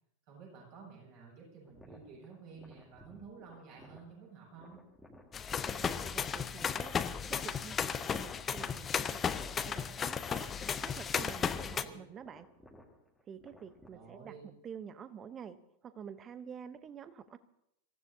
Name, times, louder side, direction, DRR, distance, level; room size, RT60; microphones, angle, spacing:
voice 1, 0.3-4.8 11.7-11.9 13.9-14.4, right 5 dB, 45° right, -3 dB, 7.6 m, -52 dB
sound 1, 1.6-13.9, left 1 dB, ahead, 1.9 m, -59 dB
sound 2, 5.3-11.8, left 7 dB, 20° left, 0.6 m, -35 dB
voice 2, 5.6-6.9 7.3-9.2 9.6-10.5 10.8-12.5 13.2-15.6 15.8-17.4, right 7 dB, 25° right, 14 dB, 0.9 m, -48 dB
26.0 x 15.5 x 2.8 m, 0.81 s
figure-of-eight pair, 90°, 0 cm